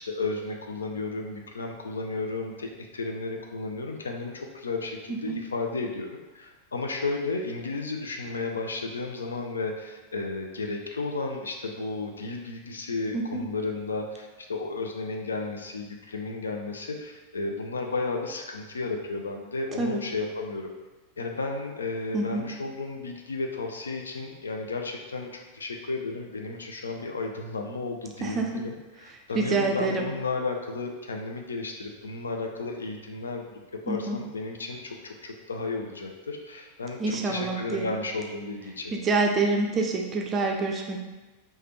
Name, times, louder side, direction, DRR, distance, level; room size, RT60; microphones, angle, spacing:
voice 1, 0.0-20.7 21.2-38.9, left 3 dB, 75° left, 3 dB, 0.4 m, -33 dB
voice 2, 29.4-30.0 33.9-34.2 37.0-37.9 38.9-41.0, right 3 dB, 25° right, 1 dB, 0.4 m, -26 dB
3.2 x 2.2 x 3.0 m, 1.2 s
figure-of-eight pair, 90°, 0 cm